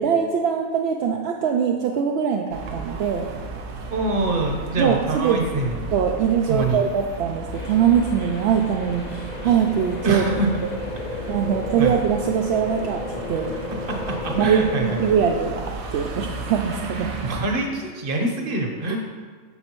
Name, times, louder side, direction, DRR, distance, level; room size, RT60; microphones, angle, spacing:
voice 1, 0.0-3.3 4.5-5.6 5.9-10.2 11.3-13.5 14.4-17.1 18.9-19.0, right 7 dB, 65° right, 1 dB, 0.7 m, -22 dB
sound 1, 2.5-17.5, right 2 dB, 85° right, 1.2 m, -35 dB
voice 2, 3.9-5.9 6.5-6.8 10.0-10.6 11.1-11.3 11.8-11.9 13.3-13.4 13.9-15.0 16.9-19.0, right 2 dB, 45° right, 2 dB, 1.1 m, -25 dB
sound 2, 7.5-15.4, left 3 dB, 65° left, 0.4 m, -33 dB
8.2 x 6.4 x 3.0 m, 1.5 s
omnidirectional pair, 1.4 m